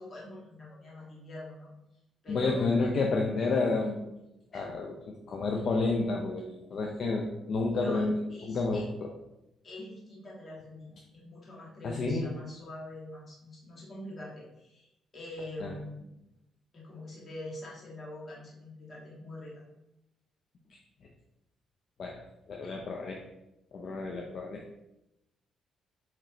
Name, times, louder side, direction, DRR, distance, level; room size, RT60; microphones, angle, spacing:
voice 1, 0.0-1.7 2.2-2.9 4.5-4.6 7.7-8.9 9.6-16.1 16.7-19.6 22.6-22.7, left 1 dB, 40° left, -5 dB, 1.7 m, -44 dB
voice 2, 2.3-4.1 4.5-4.9 5.3-9.1 11.8-12.2 15.6-15.7 22.0-22.2 22.5-23.2 23.7-24.6, left 3 dB, 60° left, 0 dB, 0.5 m, -30 dB
5.9 x 3.0 x 2.8 m, 0.89 s
cardioid pair, 90°, 0 cm